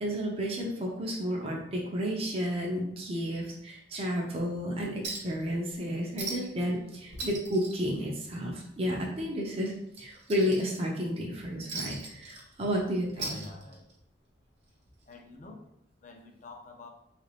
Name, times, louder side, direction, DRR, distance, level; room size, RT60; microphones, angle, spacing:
voice 1, 0.0-13.4, equal, 30° right, -2 dB, 0.5 m, -32 dB
Chink clink, 5.0-5.4 5.7-5.8 6.2-6.6 6.9-8.6 9.0-9.1 9.6-11.0 11.7-12.8 13.1-14.0 15.1-15.2, right 3 dB, 60° right, 0.9 m, -39 dB
voice 2, 13.1-13.9 15.1-15.6 16.0-16.9, left 2 dB, 40° left, 2 dB, 0.5 m, -47 dB
3.2 x 2.5 x 3.3 m, 0.76 s
head